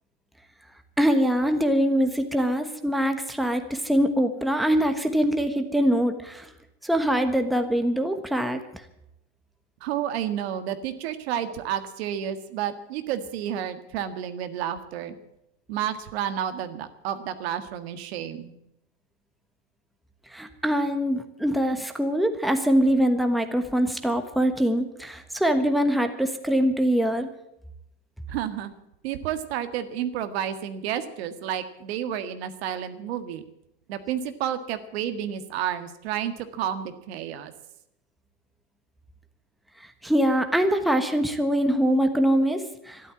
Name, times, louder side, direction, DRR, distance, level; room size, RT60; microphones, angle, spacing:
voice 1, 1.0-6.5 6.8-8.6 20.3-27.3 40.0-43.0, equal, ahead, 6 dB, 1.2 m, -23 dB
voice 2, 9.8-15.1 15.7-18.5 28.3-28.7 29.0-33.4 33.9-37.5, right 10 dB, 75° right, 10 dB, 1.7 m, -31 dB
12.5 x 11.5 x 9.6 m, 0.81 s
supercardioid pair, 135°, 31 cm